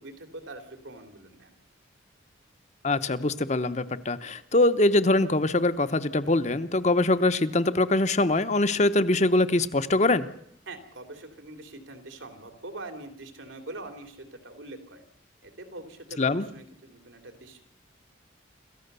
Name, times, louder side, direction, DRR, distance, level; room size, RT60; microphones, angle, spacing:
voice 1, 0.0-1.5 10.7-15.0 15.4-17.6, right 2 dB, 85° right, 6 dB, 3.1 m, -43 dB
voice 2, 2.8-10.3 16.2-16.5, left 2 dB, 35° left, 11 dB, 0.9 m, -23 dB
27.0 x 14.5 x 6.8 m, 0.74 s
head